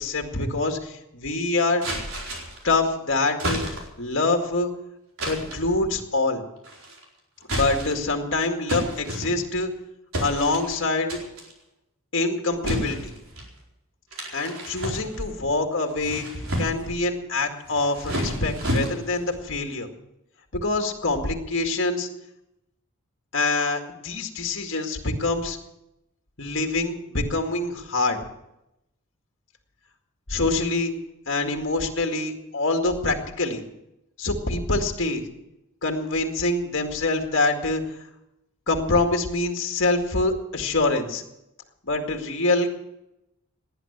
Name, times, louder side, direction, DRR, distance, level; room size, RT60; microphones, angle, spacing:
voice 1, 0.0-1.9 2.6-3.6 4.0-4.7 5.2-6.4 7.5-9.7 10.2-11.2 12.1-13.1 14.3-16.3 16.6-19.9 20.5-22.1 23.3-25.6 26.4-28.2 30.3-30.9 31.3-33.6 34.2-35.2 35.8-37.8 38.7-41.2 41.8-42.7, left 2 dB, 60° left, 4 dB, 2.1 m, -25 dB
sound 1, 1.8-2.7 3.4-4.0 5.2-5.7 6.6-7.0 7.4-8.1 8.7-9.7 10.1-10.8 11.1-11.5 12.6-13.5 14.1-15.4 15.9-16.9 17.7-19.3, right 1 dB, 75° right, 4.4 m, -30 dB
18.5 x 10.5 x 7.2 m, 0.88 s
head